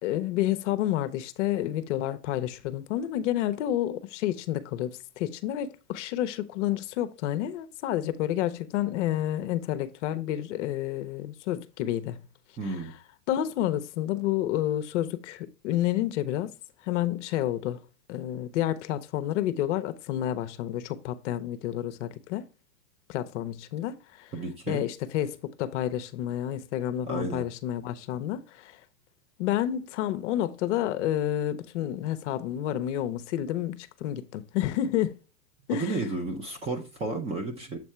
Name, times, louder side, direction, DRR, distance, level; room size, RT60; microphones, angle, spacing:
voice 1, 0.0-12.2 12.6-12.8 13.3-16.5 16.8-17.8 18.1-22.4 23.1-24.3 24.7-28.8 29.4-35.1 35.7-36.0, left 12 dB, 50° left, 0.7 m, -29 dB
voice 2, 12.6-12.9 24.3-24.9 27.1-27.4 35.7-37.8, right 3 dB, 15° right, 0.6 m, -32 dB
7.4 x 3.5 x 4.2 m
supercardioid pair, 140°, 46 cm